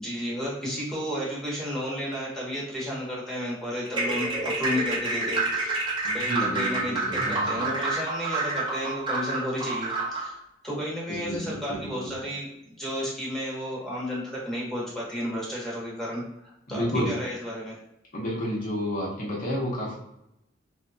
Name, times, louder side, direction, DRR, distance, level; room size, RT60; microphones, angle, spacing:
voice 1, 0.0-5.9 6.1-10.4 10.6-17.8, equal, ahead, -6 dB, 0.9 m, -32 dB
sound 1, 3.9-10.3, right 2 dB, 25° right, 0.5 m, -28 dB
voice 2, 6.0-7.7 11.1-12.2 16.7-17.1 18.1-19.9, equal, 45° left, -4 dB, 0.7 m, -31 dB
3.1 x 2.1 x 2.6 m, 0.83 s
head